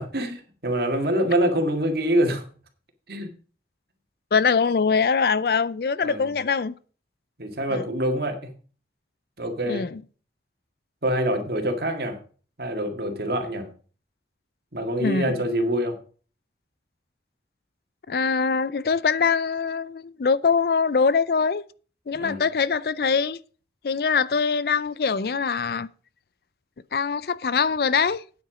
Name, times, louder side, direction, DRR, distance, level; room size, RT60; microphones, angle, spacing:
voice 1, 0.0-2.4 3.1-3.3 6.0-6.3 7.4-8.5 9.4-9.9 11.0-12.2 12.6-13.7 14.7-16.0 22.1-22.4, right 1 dB, 60° right, 1.9 m, -25 dB
voice 2, 4.3-6.7 7.7-7.8 9.6-10.0 15.0-15.4 18.1-21.6 22.1-23.4 23.8-25.9 26.9-28.2, left 5 dB, 55° left, 0.4 m, -23 dB
9.3 x 7.8 x 5.0 m
head